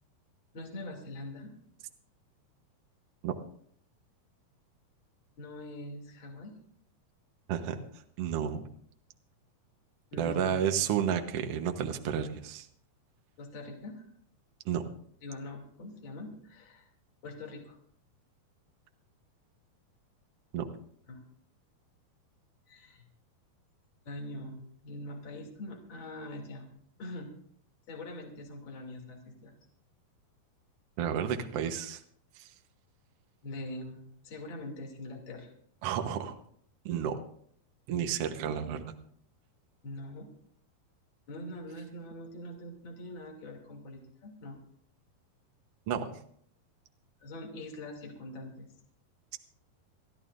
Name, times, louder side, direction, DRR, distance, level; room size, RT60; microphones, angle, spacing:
voice 1, 0.5-1.5 5.4-6.5 10.1-10.8 13.4-14.1 15.2-16.9 17.2-17.8 21.1-21.2 22.7-23.0 24.0-26.7 27.0-27.3 27.9-29.5 33.4-35.5 39.8-40.3 41.3-44.6 47.2-48.7, left 1 dB, 35° left, 0 dB, 3.1 m, -43 dB
voice 2, 8.2-8.6 10.2-12.7 14.6-14.8 20.5-20.7 31.0-32.0 32.4-32.5 35.8-36.4 36.8-37.2 37.9-38.9 45.9-46.2, right 8 dB, 70° right, 6 dB, 1.4 m, -31 dB
29.0 x 11.0 x 2.6 m, 0.62 s
omnidirectional pair, 4.4 m